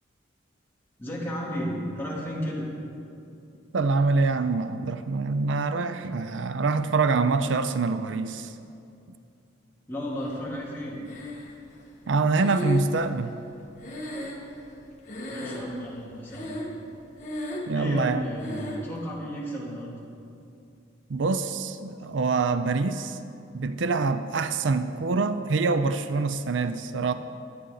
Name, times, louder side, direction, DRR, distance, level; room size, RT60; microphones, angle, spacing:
voice 1, 1.0-2.7 9.9-11.0 15.3-16.5 17.7-20.0, equal, 10° left, -7 dB, 3.1 m, -33 dB
voice 2, 3.7-8.5 12.1-13.3 17.7-18.3 21.1-23.2 23.5-27.1, right 4 dB, 70° right, 11 dB, 0.5 m, -25 dB
Breathing, 11.1-11.8 12.3-14.8 15.1-15.9 16.3-16.9 17.1-17.8 18.4-18.9, left 1 dB, 40° left, 2.0 m, -35 dB
21.5 x 9.7 x 3.9 m, 2.6 s
head